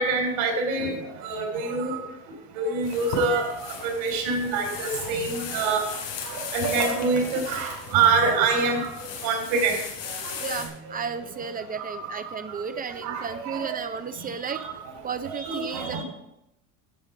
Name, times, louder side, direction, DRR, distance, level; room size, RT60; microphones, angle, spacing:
voice 1, 0.0-2.0 2.6-5.9 6.2-9.8 10.1-10.5 11.8-13.9 14.2-14.7 15.2-16.0, right 4 dB, 65° right, 1 dB, 3.4 m, -26 dB
sound 1, 2.8-10.7, left 5 dB, 75° left, 4.5 m, -37 dB
voice 2, 10.3-14.6 15.0-16.0, right 6 dB, 25° right, 11 dB, 0.5 m, -33 dB
11.0 x 7.3 x 5.0 m, 0.86 s
supercardioid pair, 120°, 37 cm